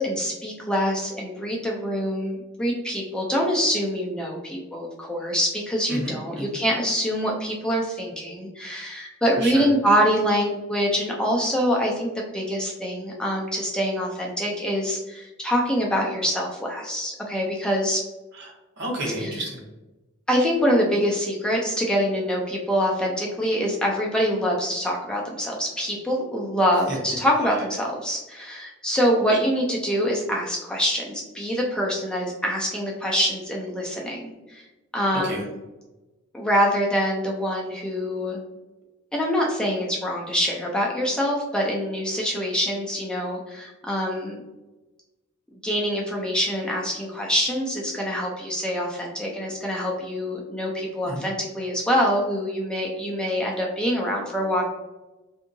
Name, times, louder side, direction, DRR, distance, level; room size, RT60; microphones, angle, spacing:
voice 1, 0.0-18.0 19.2-19.3 20.3-34.6 34.9-35.5 36.3-38.4 39.1-44.4 45.6-54.6, equal, 5° left, -2 dB, 0.4 m, -25 dB
voice 2, 5.9-6.6 9.4-9.7 18.3-19.6 26.9-27.0 29.3-29.4 35.2-35.4 51.0-51.2, right 1 dB, 55° right, -1 dB, 1.0 m, -31 dB
3.5 x 2.7 x 2.6 m, 1.1 s
head